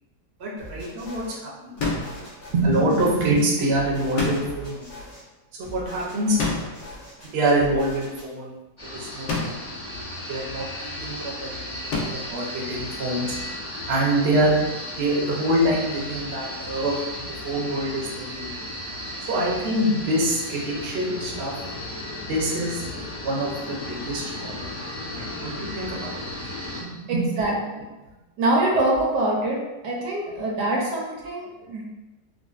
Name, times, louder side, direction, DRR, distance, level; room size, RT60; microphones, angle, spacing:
voice 1, 0.4-1.8 2.5-4.9 5.6-6.4 7.3-8.5 8.9-13.4 13.7-14.6 14.9-17.0 17.4-18.5 19.3-21.5 22.3-22.8 23.2-24.7 25.1-26.1 26.8-27.2, right 1 dB, 50° right, -4 dB, 0.8 m, -25 dB
sound 1, 0.6-1.4 1.8-5.2 5.6-8.3, equal, 70° left, 1.9 m, -41 dB
sound 2, 1.8-2.3 4.2-4.8 6.4-6.9 9.3-9.8 11.9-12.4, left 3 dB, 85° left, 1.3 m, -28 dB
sound 3, 8.8-26.8, left 1 dB, 30° left, 0.6 m, -35 dB
voice 2, 27.1-27.8 28.4-29.6 29.8-31.8, right 1 dB, 75° right, -2 dB, 1.3 m, -24 dB
5.0 x 2.1 x 2.4 m, 1.1 s
omnidirectional pair, 1.8 m